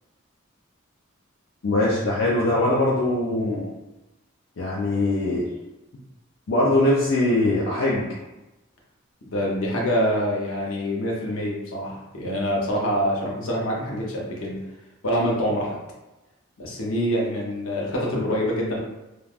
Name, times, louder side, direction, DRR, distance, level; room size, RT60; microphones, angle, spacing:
voice 1, 1.6-3.7 4.6-5.4 6.5-8.0, left 1 dB, 65° left, -5 dB, 0.5 m, -21 dB
voice 2, 9.3-14.6 15.0-15.8 16.6-18.8, equal, 90° left, -3 dB, 0.8 m, -25 dB
3.3 x 2.2 x 2.4 m, 0.99 s
head